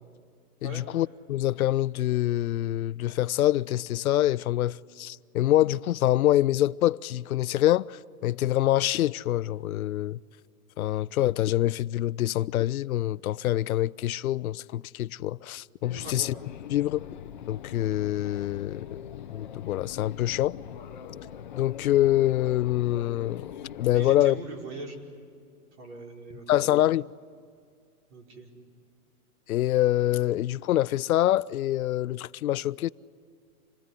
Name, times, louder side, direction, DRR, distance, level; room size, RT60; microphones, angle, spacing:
voice 1, 0.6-10.2 10.8-16.3 16.7-17.1 17.5-18.9 19.3-20.6 21.5-23.5 23.8-24.4 26.5-27.1 29.5-32.9, left 14 dB, 70° left, 0.6 m, -25 dB
sound 1, 15.8-24.2, left 9 dB, 35° left, 0.6 m, -42 dB
voice 2, 23.9-25.0 25.8-26.7 28.1-28.5, right 2 dB, 50° right, 5.1 m, -41 dB
27.0 x 20.5 x 9.8 m
hypercardioid pair, 180°, 44 cm